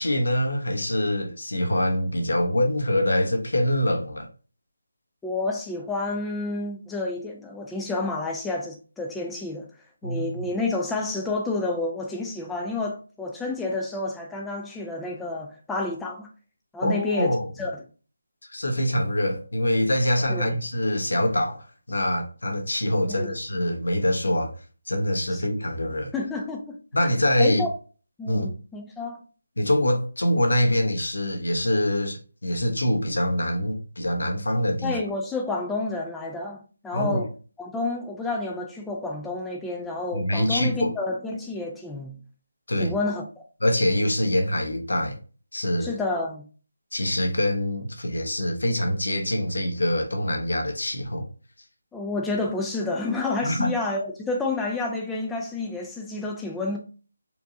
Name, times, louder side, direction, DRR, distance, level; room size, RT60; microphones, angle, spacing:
voice 1, 0.0-4.3 10.0-10.4 16.8-17.5 18.5-24.5 24.9-26.1 26.9-27.6 28.3-28.5 29.6-35.0 36.9-37.2 40.1-40.9 42.7-42.9 43.6-45.2 45.5-46.0 46.9-51.3 53.4-53.7, left 1 dB, 85° left, 1.1 m, -24 dB
voice 2, 5.2-9.7 10.0-16.3 16.7-17.7 20.3-20.5 23.1-23.4 25.3-25.4 26.1-26.8 27.4-27.7 28.2-29.2 34.8-37.3 37.6-42.2 42.8-43.2 45.8-46.4 51.9-56.8, left 2 dB, 5° left, 0.3 m, -30 dB
4.5 x 2.6 x 2.7 m
figure-of-eight pair, 170°, 0 cm